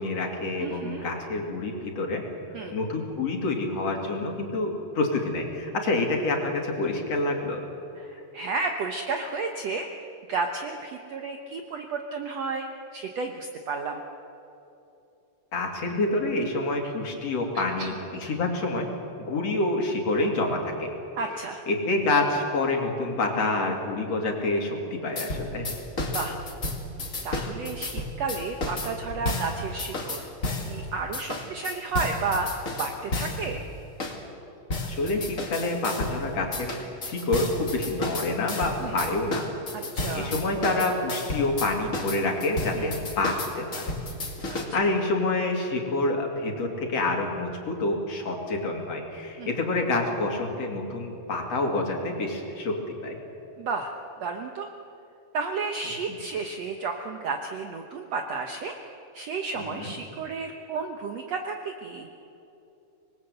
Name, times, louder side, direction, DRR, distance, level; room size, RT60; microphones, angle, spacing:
voice 1, 0.0-2.2 2.7-7.6 15.5-18.9 19.2-20.9 21.7-25.7 34.8-39.4 40.1-43.9 44.5-53.2 59.6-59.9, left 2 dB, 50° left, 2 dB, 3.6 m, -27 dB
voice 2, 0.6-1.1 2.5-2.8 8.0-9.9 10.3-12.7 12.9-14.0 16.8-16.9 17.8-17.9 21.2-21.6 26.1-26.4 27.2-30.2 30.7-33.6 38.8-39.0 39.7-40.3 42.7-42.9 44.5-44.9 49.4-49.5 53.6-53.9 54.2-54.7 55.3-58.8 59.1-62.1, right 4 dB, 60° right, 4 dB, 1.9 m, -32 dB
sound 1, 25.2-30.7 31.1-33.5 34.0-34.2 34.7-36.2 36.5-44.6, left 2 dB, 25° left, 2.2 m, -32 dB
26.0 x 20.5 x 8.0 m, 2.9 s
omnidirectional pair, 3.9 m